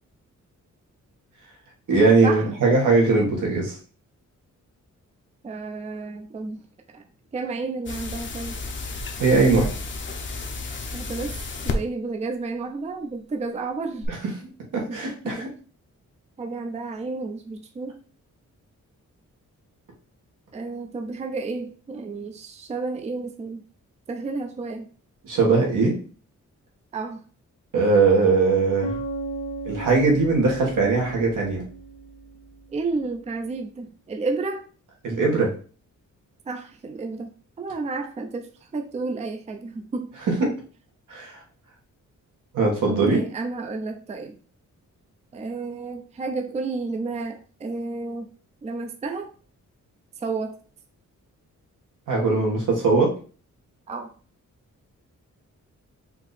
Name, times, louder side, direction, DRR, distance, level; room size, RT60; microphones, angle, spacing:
voice 1, 1.9-3.8 9.2-9.7 14.1-14.2 14.7-15.5 25.2-26.0 27.7-28.9 29.7-31.6 35.0-35.5 40.3-40.5 41.1-41.4 42.5-43.2 52.1-53.1, right 3 dB, 85° right, -1 dB, 1.8 m, -20 dB
voice 2, 5.4-6.6 6.9-7.0 7.3-8.6 10.9-11.3 11.6-14.1 14.9-15.5 16.4-18.0 20.5-23.6 24.1-24.9 26.9-27.2 32.7-34.6 36.5-37.3 37.6-40.2 42.9-44.3 45.3-48.3 48.6-49.3 50.2-50.6 53.9-54.1, right 3 dB, 20° right, 4 dB, 0.4 m, -31 dB
sound 1, 7.9-11.7 14.0-14.1, left 3 dB, 40° left, 0.6 m, -32 dB
Bass guitar, 28.8-32.6, right 2 dB, 70° left, 1.2 m, -35 dB
4.5 x 2.7 x 4.1 m, 0.39 s
wide cardioid pair, 175°, 31 cm